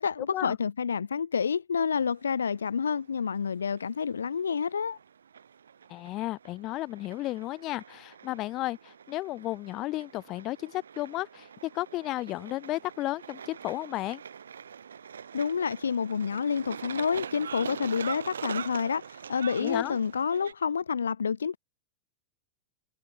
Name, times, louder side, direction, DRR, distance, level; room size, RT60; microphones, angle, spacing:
voice 1, 0.0-5.0 15.3-21.6, left 6 dB, 70° left, 2.9 m, -29 dB
sound 1, 1.8-20.5, right 7 dB, 70° right, 2.8 m, -44 dB
voice 2, 5.9-14.2 19.6-20.0, left 17 dB, 35° left, 6.9 m, -33 dB
figure-of-eight pair, 90°, 0 cm